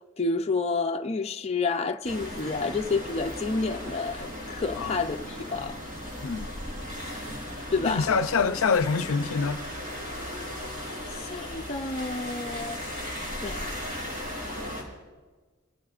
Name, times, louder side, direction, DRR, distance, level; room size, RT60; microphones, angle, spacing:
voice 1, 0.2-5.8 7.7-8.1 11.1-13.1 13.4-13.8, left 4 dB, 30° left, 0.5 m, -30 dB
sound 1, 2.0-14.8, left 1 dB, 40° right, 4.4 m, -36 dB
voice 2, 6.2-6.5 7.8-9.6, left 5 dB, 75° left, 0.5 m, -25 dB
25.0 x 15.5 x 2.5 m
head